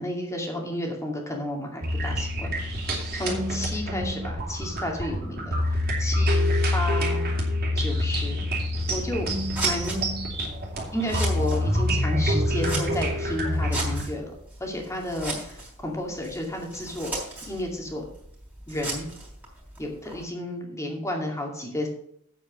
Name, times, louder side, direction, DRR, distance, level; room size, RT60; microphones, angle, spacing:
voice 1, 0.0-2.8 3.1-6.4 6.7-7.3 7.8-8.4 8.9-9.3 9.6-10.0 10.9-17.2 17.5-18.1 18.7-19.1 19.8-21.9, left 1 dB, 15° left, 1 dB, 2.3 m, -32 dB
sound 1, 1.8-14.0, left 1 dB, 45° right, 2.9 m, -26 dB
Scissors, 8.8-20.2, right 2 dB, 10° right, 3.4 m, -38 dB
8.4 x 8.0 x 5.9 m, 0.69 s
head